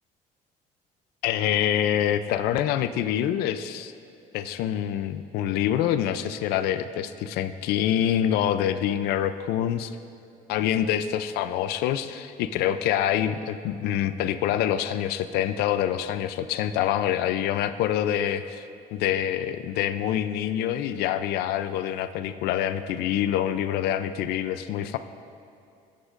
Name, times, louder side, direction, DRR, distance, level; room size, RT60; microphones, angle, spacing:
voice 1, 1.2-3.9 4.3-10.0 10.5-18.7 18.9-25.0, left 10 dB, 90° left, 11 dB, 0.4 m, -26 dB
13.0 x 10.0 x 2.5 m, 2.6 s
cardioid pair, 120°, 16 cm